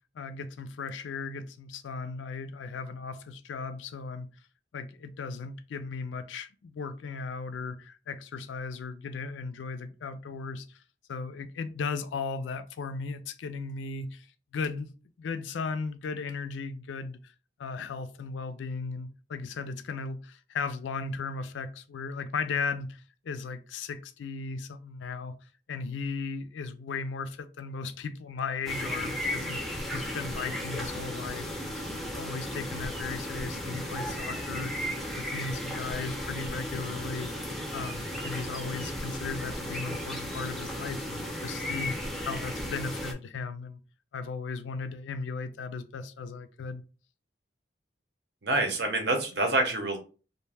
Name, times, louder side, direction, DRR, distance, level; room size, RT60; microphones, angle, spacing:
voice 1, 0.1-4.3 4.7-10.8 11.1-14.3 14.5-14.9 15.2-17.3 17.6-25.3 25.7-31.8 32.2-34.8 35.1-43.8 44.1-46.8, left 4 dB, 80° left, 0.4 m, -36 dB
sound 1, 28.7-43.1, equal, ahead, 0.4 m, -35 dB
voice 2, 48.4-50.0, right 2 dB, 60° right, 0.7 m, -26 dB
2.5 x 2.1 x 3.3 m
head